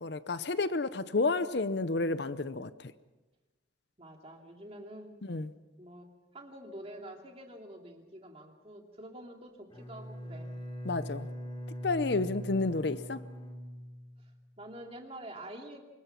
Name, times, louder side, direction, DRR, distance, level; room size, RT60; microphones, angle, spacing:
voice 1, 0.0-2.7 5.3-5.5 10.9-11.3 11.8-13.2, left 3 dB, 60° left, 0.7 m, -30 dB
voice 2, 4.0-5.2 5.8-6.1 6.3-10.5 14.2-14.3 14.6-15.8, right 1 dB, 30° right, 2.7 m, -47 dB
Bowed string instrument, 9.7-14.4, equal, 25° left, 3.9 m, -42 dB
25.5 x 21.5 x 5.8 m
head